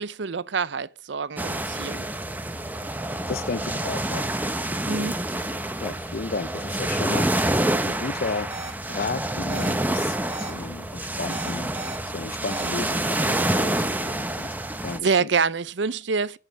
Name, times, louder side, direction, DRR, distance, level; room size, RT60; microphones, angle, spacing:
voice 1, 0.0-2.0 4.9-5.1 15.0-16.4, right 5 dB, 65° right, 0.6 m, -26 dB
sound 1, 1.4-15.0, right 1 dB, 10° right, 1.0 m, -27 dB
voice 2, 3.3-4.2 4.7-5.1 5.8-7.3 7.8-8.5 8.9-11.7 12.0-14.5 14.8-15.3, left 4 dB, 50° left, 0.6 m, -33 dB
sound 2, 8.5-8.7 9.5-9.7 10.3-10.5 11.3-12.0 12.5-12.7 13.3-13.5, right 3 dB, 35° right, 2.3 m, -37 dB
11.0 x 7.7 x 8.6 m
head